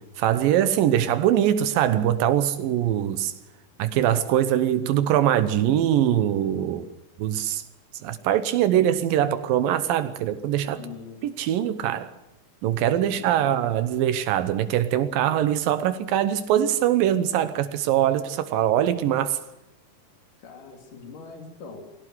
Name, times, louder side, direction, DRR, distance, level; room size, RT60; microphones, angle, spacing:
voice 1, 0.2-3.3 3.8-6.9 7.2-7.6 8.0-10.8 11.2-12.1 12.6-19.4, right 11 dB, 85° right, 2.7 m, -22 dB
voice 2, 10.7-11.2 13.0-13.5 20.4-21.9, left 5 dB, 70° left, 4.7 m, -42 dB
21.0 x 17.0 x 8.0 m
omnidirectional pair, 3.9 m